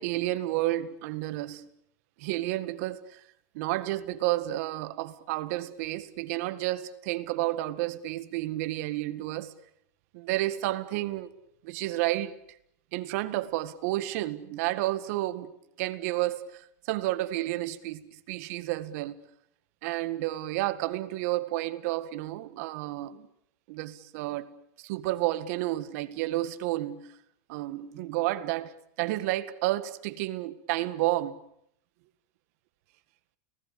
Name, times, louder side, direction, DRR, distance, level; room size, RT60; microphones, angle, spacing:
voice 1, 0.0-1.7 2.2-3.2 3.5-9.5 10.1-11.3 11.6-12.3 12.9-15.5 15.8-19.2 19.8-23.3 23.7-24.5 24.8-27.1 27.5-31.4, right 16 dB, 65° right, 1.8 m, -31 dB
30.0 x 19.0 x 8.5 m
supercardioid pair, 125°, 9 cm